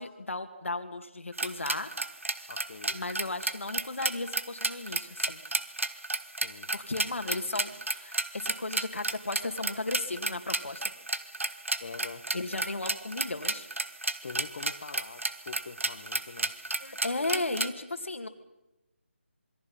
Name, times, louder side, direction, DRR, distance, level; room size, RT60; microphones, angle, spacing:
voice 1, 0.0-1.9 2.9-5.4 6.7-10.8 12.3-13.7 16.8-18.3, left 2 dB, 80° left, 7 dB, 2.5 m, -35 dB
sound 1, 1.4-17.7, right 2 dB, 90° right, 1.5 m, -32 dB
voice 2, 2.5-3.0 6.4-6.7 11.8-12.3 14.2-16.5, left 5 dB, 45° left, 5 dB, 1.5 m, -44 dB
27.0 x 22.5 x 5.7 m, 0.96 s
figure-of-eight pair, 165°, 7 cm